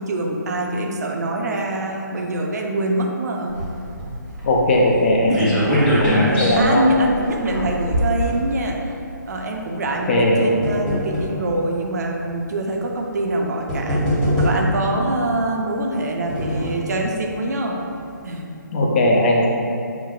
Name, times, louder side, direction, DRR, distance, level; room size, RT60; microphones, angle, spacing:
voice 1, 0.0-3.6 5.3-9.0 9.3-10.1 10.4-14.0 14.4-17.8 18.2-18.6, right 1 dB, 55° right, 1 dB, 0.5 m, -24 dB
sound 1, 3.5-9.0 9.8-11.4 12.2-12.3 13.3-13.4 13.7-14.9 15.8-16.9 17.3-17.4 17.7-17.8, equal, 5° left, 0.9 m, -23 dB
voice 2, 4.4-5.6 6.0-6.8 10.1-10.4 18.7-19.5, left 1 dB, 35° left, -1 dB, 0.4 m, -18 dB
5.7 x 2.0 x 2.3 m, 2.6 s
figure-of-eight pair, 145°, 11 cm